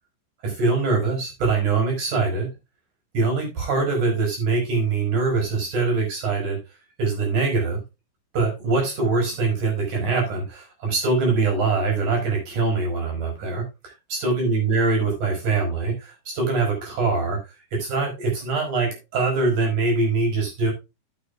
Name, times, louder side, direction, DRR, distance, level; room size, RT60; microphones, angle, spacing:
voice 1, 0.4-2.5 3.1-6.6 7.0-7.8 8.3-17.4 17.7-20.7, right 3 dB, 40° right, 1 dB, 6.4 m, -23 dB
13.5 x 8.4 x 2.4 m, 0.26 s
omnidirectional pair, 5.7 m